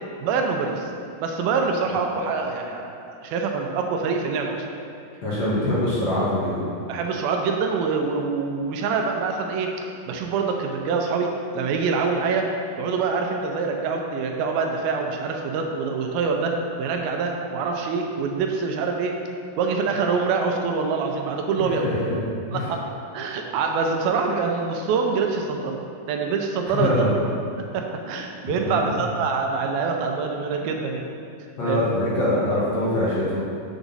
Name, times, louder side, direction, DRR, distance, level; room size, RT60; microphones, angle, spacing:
voice 1, 0.2-0.9 1.2-4.7 6.9-9.7 10.1-11.3 11.5-12.5 12.8-19.2 19.6-21.9 22.5-22.8 23.1-25.8 26.1-27.1 27.7-31.1 31.7-31.9, right 5 dB, 80° right, 2 dB, 2.5 m, -25 dB
voice 2, 5.2-6.6 21.6-22.2 22.5-22.6 26.7-27.1 28.7-28.8 31.6-33.4, left 1 dB, 60° left, -8 dB, 2.1 m, -23 dB
8.0 x 6.1 x 4.0 m, 2.5 s
omnidirectional pair, 4.3 m